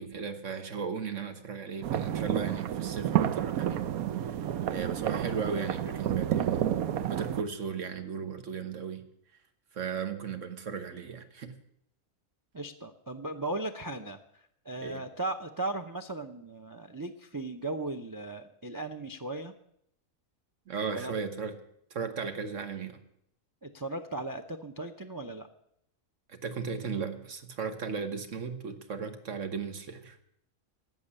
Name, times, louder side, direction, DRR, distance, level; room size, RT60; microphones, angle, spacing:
voice 1, 0.0-3.8 4.2-6.6 7.0-9.0 9.7-11.5 14.8-15.0 20.7-21.5 21.9-23.0 26.3-30.2, right 5 dB, 60° right, 8 dB, 1.6 m, -36 dB
sound 1, 1.8-7.4, right 10 dB, 90° right, 1.2 m, -30 dB
voice 2, 12.5-14.2 14.6-19.5 20.9-21.1 23.6-25.5, right 2 dB, 25° right, 8 dB, 0.4 m, -37 dB
12.0 x 7.8 x 9.9 m, 0.72 s
omnidirectional pair, 1.5 m